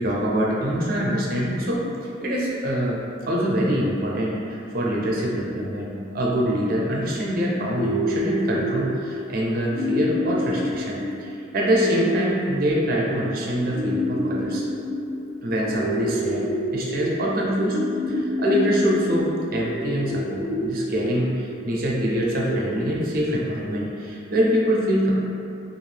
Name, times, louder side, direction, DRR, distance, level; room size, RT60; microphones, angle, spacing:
voice 1, 0.0-1.9 2.2-14.6 15.4-17.8 18.1-25.1, equal, 45° right, -3 dB, 0.5 m, -24 dB
sound 1, 7.7-23.7, equal, 90° left, 0.6 m, -29 dB
2.6 x 2.4 x 3.2 m, 2.5 s
head